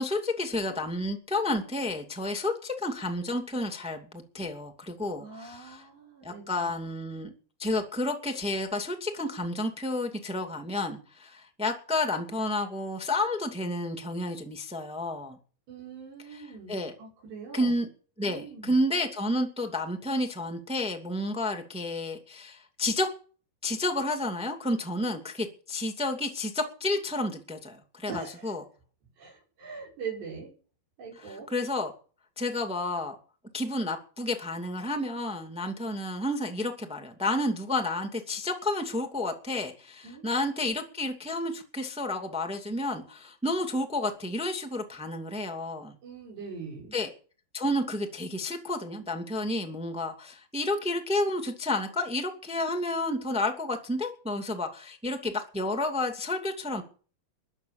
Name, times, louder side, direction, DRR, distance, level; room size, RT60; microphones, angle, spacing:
voice 1, 0.0-5.8 6.2-7.3 7.6-15.4 16.7-16.9 17.5-17.9 18.2-23.1 23.6-28.6 31.3-31.9 32.4-33.1 33.5-45.9 46.9-47.1 47.5-56.8, left 1 dB, 5° right, 5 dB, 0.7 m, -31 dB
voice 2, 5.2-6.7 15.7-17.7 18.2-18.7 28.1-28.5 29.2-30.5 31.0-31.5 40.0-40.2 46.0-47.0, right 5 dB, 75° right, -3 dB, 8.3 m, -42 dB
22.0 x 8.2 x 6.6 m, 0.39 s
omnidirectional pair, 5.0 m